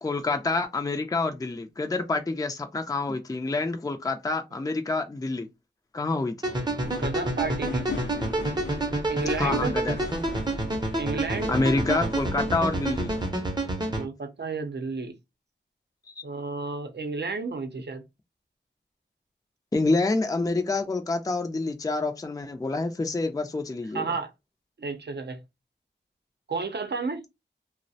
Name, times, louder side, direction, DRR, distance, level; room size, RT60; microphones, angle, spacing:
voice 1, 0.0-5.5 5.9-6.3 9.4-10.0 11.5-13.1 16.1-16.2 19.7-24.1, left 3 dB, 20° left, 0.4 m, -27 dB
sound 1, 6.4-14.0, right 2 dB, 20° right, 0.6 m, -29 dB
sound 2, 6.8-13.3, left 3 dB, 70° left, 0.5 m, -37 dB
voice 2, 6.8-7.9 9.1-9.8 11.0-11.5 11.9-12.1 14.0-15.2 16.2-18.0 23.9-24.3 24.8-25.4 26.5-27.2, right 4 dB, 60° right, 0.6 m, -32 dB
2.3 x 2.0 x 2.6 m
wide cardioid pair, 55°, 19 cm